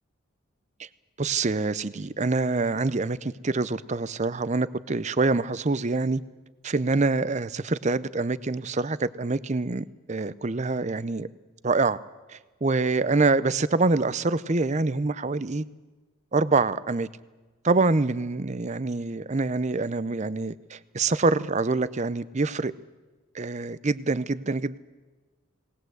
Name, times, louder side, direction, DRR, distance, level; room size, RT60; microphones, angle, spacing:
voice 1, 1.2-6.2 6.6-11.3 11.6-12.0 12.3-15.6 16.3-17.1 17.6-22.7 23.3-24.8, right 3 dB, 30° right, 16 dB, 0.6 m, -25 dB
20.0 x 19.5 x 7.9 m, 1.3 s
head